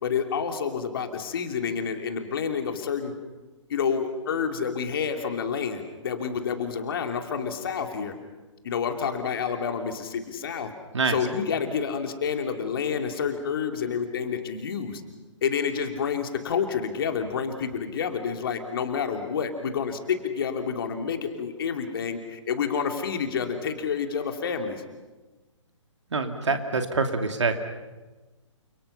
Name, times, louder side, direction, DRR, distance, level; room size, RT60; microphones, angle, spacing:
voice 1, 0.0-3.1 3.7-8.1 8.6-10.7 11.1-15.0 15.4-24.8, left 6 dB, 45° left, 5 dB, 3.1 m, -29 dB
voice 2, 26.1-27.5, right 4 dB, 65° right, 6 dB, 2.7 m, -25 dB
29.5 x 27.0 x 5.7 m, 1.2 s
figure-of-eight pair, 130°, 16 cm